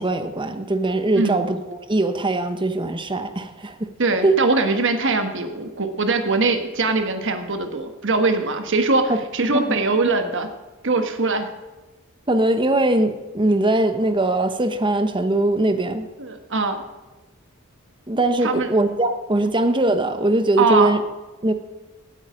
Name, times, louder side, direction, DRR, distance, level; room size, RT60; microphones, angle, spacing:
voice 1, 0.0-3.9 4.2-4.4 9.1-9.2 9.5-9.8 12.3-16.1 18.1-21.0 21.4-21.5, right 2 dB, 20° right, 9 dB, 1.0 m, -21 dB
voice 2, 4.0-10.5 10.8-11.5 16.2-16.8 18.4-18.8 20.6-20.9, right 3 dB, 60° right, 7 dB, 1.4 m, -21 dB
17.5 x 9.0 x 5.1 m, 1.2 s
head